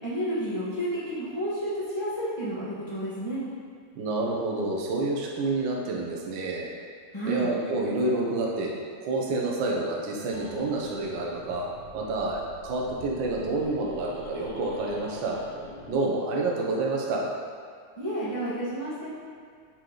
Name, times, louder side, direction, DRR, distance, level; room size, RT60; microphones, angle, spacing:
voice 1, 0.0-3.4 7.1-7.5 18.0-19.1, right 1 dB, 30° left, -12 dB, 0.4 m, -31 dB
voice 2, 3.9-6.7 7.2-8.7 9.0-11.7 11.9-15.4 15.9-17.2, right 2 dB, 85° right, -3 dB, 1.0 m, -28 dB
sound 1, 10.3-15.9, left 1 dB, 80° left, 2.3 m, -46 dB
6.5 x 4.6 x 3.9 m, 2.2 s
omnidirectional pair, 3.4 m